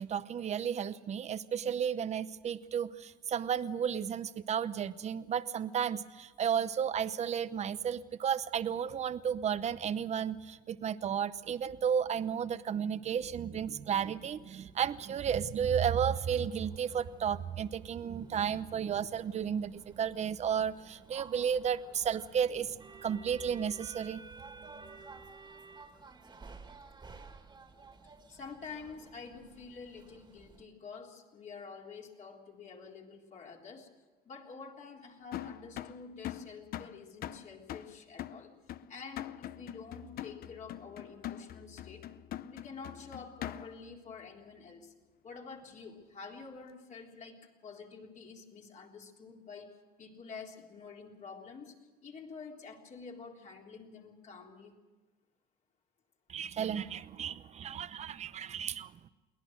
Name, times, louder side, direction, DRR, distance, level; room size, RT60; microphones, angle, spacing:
voice 1, 0.0-24.2 56.3-59.1, right 8 dB, 40° right, 14 dB, 0.8 m, -33 dB
sound 1, 16.4-30.6, right 4 dB, 25° right, 2.1 m, -53 dB
voice 2, 28.3-33.9 34.3-38.5 38.9-42.1 42.5-44.9 45.2-51.8 52.0-54.8, left 5 dB, 45° left, 0 dB, 3.6 m, -48 dB
sound 2, 35.3-43.9, left 12 dB, 65° left, 0.6 m, -43 dB
23.0 x 18.0 x 6.4 m, 1.3 s
cardioid pair, 110°, 17 cm